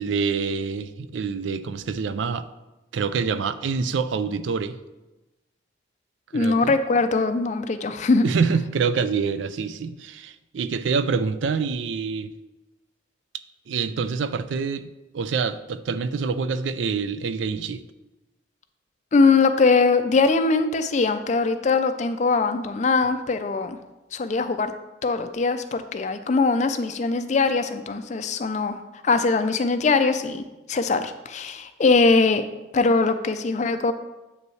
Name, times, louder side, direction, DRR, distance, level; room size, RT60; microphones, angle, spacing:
voice 1, 0.0-2.5 2.9-4.8 6.3-6.8 8.2-12.3 13.7-14.9 15.1-17.8, right 5 dB, 80° right, 13 dB, 0.4 m, -26 dB
voice 2, 6.3-8.3 19.1-23.8 24.1-24.7 25.0-30.4 30.7-32.4 32.7-33.9, left 4 dB, 40° left, 10 dB, 0.4 m, -21 dB
7.9 x 5.2 x 3.2 m, 1.0 s
head